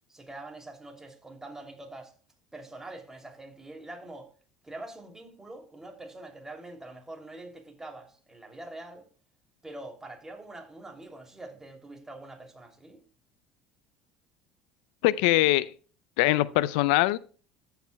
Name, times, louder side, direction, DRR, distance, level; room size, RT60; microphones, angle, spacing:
voice 1, 0.1-2.1 2.5-4.3 4.6-9.1 9.6-13.0, right 2 dB, 10° right, 3.0 m, -44 dB
voice 2, 15.0-15.7 16.2-17.2, left 17 dB, 75° left, 0.5 m, -22 dB
14.0 x 8.1 x 2.3 m
hypercardioid pair, 75°, 4 cm